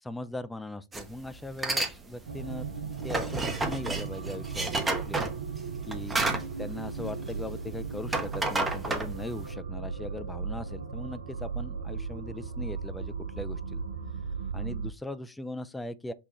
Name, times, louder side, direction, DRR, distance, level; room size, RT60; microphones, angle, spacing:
voice 1, 0.0-2.7 3.0-5.2 5.9-6.2 6.6-13.8 14.5-16.1, left 2 dB, 5° left, 0.4 m, -39 dB
sound 1, 0.9-1.1 1.5-1.9 2.3-7.6 7.9-9.5, right 2 dB, 15° right, 0.7 m, -31 dB
sound 2, 2.3-14.9, right 5 dB, 70° right, 0.6 m, -37 dB
5.6 x 2.3 x 2.9 m
figure-of-eight pair, 90°, 0 cm